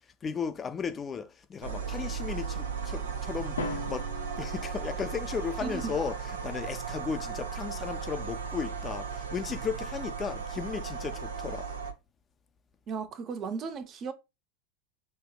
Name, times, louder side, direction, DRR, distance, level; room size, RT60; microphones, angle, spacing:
voice 1, 0.2-4.1 4.4-11.7, left 6 dB, 25° left, 0.3 m, -35 dB
sound 1, 1.6-11.9, right 6 dB, 80° right, 0.6 m, -36 dB
Drum, 3.6-5.6, left 3 dB, 85° left, 0.6 m, -39 dB
voice 2, 5.6-5.9 12.9-14.1, right 5 dB, 35° right, 0.5 m, -35 dB
5.4 x 2.1 x 2.3 m
hypercardioid pair, 90°, 0 cm